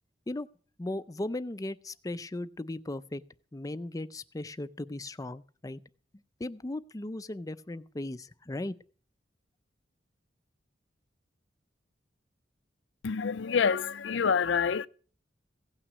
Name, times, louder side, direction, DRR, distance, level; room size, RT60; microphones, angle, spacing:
voice 1, 0.8-3.2 3.5-5.8 6.4-8.7, left 1 dB, 20° left, 0.5 m, -37 dB
voice 2, 13.0-14.9, left 6 dB, 85° left, 0.5 m, -27 dB
16.5 x 6.0 x 8.1 m
head